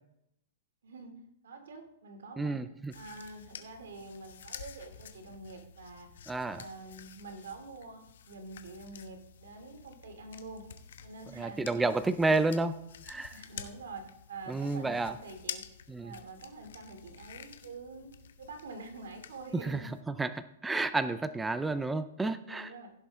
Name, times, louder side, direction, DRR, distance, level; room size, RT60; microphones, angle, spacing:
voice 1, 0.8-1.1 1.4-2.6 2.9-6.1 6.5-10.6 11.0-11.9 12.2-12.4 13.3-15.6 16.0-18.1 18.4-19.9 22.4-22.9, right 3 dB, 85° right, 5 dB, 2.8 m, -46 dB
voice 2, 2.4-2.9 6.3-6.6 11.3-12.7 13.0-13.4 14.5-15.1 15.9-16.1 19.6-22.7, right 3 dB, 5° right, 12 dB, 0.5 m, -31 dB
sound 1, 2.9-20.0, left 8 dB, 75° left, 1.2 m, -49 dB
16.0 x 7.2 x 3.7 m, 0.80 s
hypercardioid pair, 150°, 0 cm